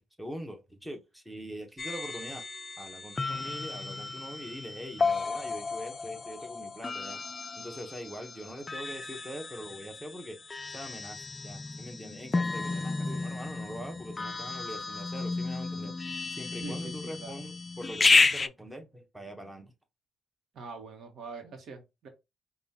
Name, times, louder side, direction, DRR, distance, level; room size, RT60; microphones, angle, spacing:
voice 1, 0.0-2.4 2.8-7.2 7.5-10.4 10.7-16.0 16.3-19.7, equal, 5° right, 1.0 m, -43 dB
sound 1, 1.8-18.5, left 3 dB, 30° left, 0.3 m, -32 dB
voice 2, 16.6-17.3 20.5-22.1, right 4 dB, 65° right, 1.1 m, -44 dB
5.2 x 2.4 x 2.8 m
cardioid pair, 90°, 0 cm